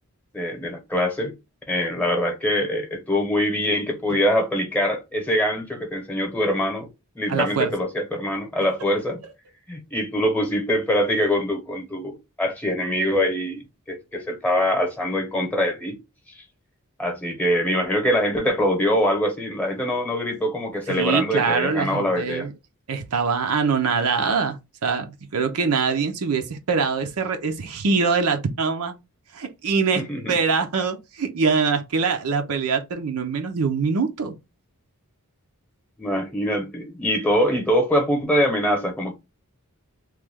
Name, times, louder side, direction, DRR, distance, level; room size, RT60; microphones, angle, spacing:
voice 1, 0.3-1.3 1.7-6.9 7.1-9.2 9.7-13.6 13.9-16.0 17.0-22.5 29.9-30.4 36.0-39.1, equal, 5° left, 0.9 m, -23 dB
voice 2, 7.3-7.7 20.9-22.5 22.9-24.6 24.8-28.9 29.3-34.3, right 5 dB, 80° right, 0.6 m, -23 dB
3.1 x 2.2 x 3.5 m
head